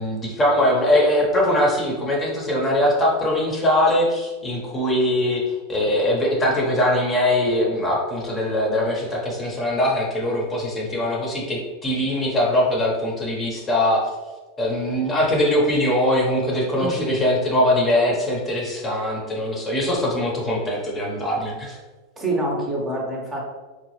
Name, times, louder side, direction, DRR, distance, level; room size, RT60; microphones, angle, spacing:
voice 1, 0.0-14.0 14.6-21.8, left 1 dB, 20° left, -3 dB, 0.9 m, -21 dB
voice 2, 16.8-17.1 22.2-23.4, right 1 dB, 20° right, -3 dB, 0.9 m, -26 dB
3.8 x 2.3 x 3.1 m, 1.3 s
hypercardioid pair, 120°, 0 cm